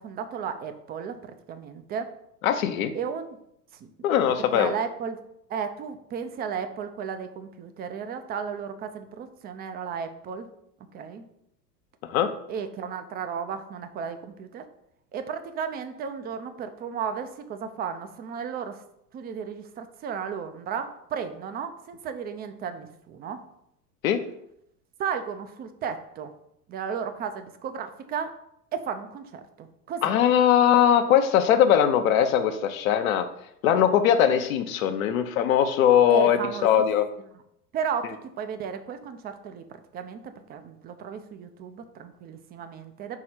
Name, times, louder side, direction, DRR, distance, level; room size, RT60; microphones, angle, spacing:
voice 1, 0.0-2.1 2.9-3.3 4.5-5.2 5.5-10.5 10.9-11.3 12.5-14.6 15.1-18.8 19.1-23.4 25.0-26.3 26.7-28.3 28.7-30.0 36.1-36.7 37.7-39.6 39.9-43.2, right 7 dB, 20° right, 9 dB, 0.5 m, -34 dB
voice 2, 2.4-2.9 4.0-4.7 12.0-12.3 24.0-24.2 30.0-33.3 33.6-37.1, left 9 dB, 55° left, 7 dB, 0.7 m, -21 dB
4.7 x 4.2 x 5.7 m, 0.76 s
figure-of-eight pair, 85°, 49 cm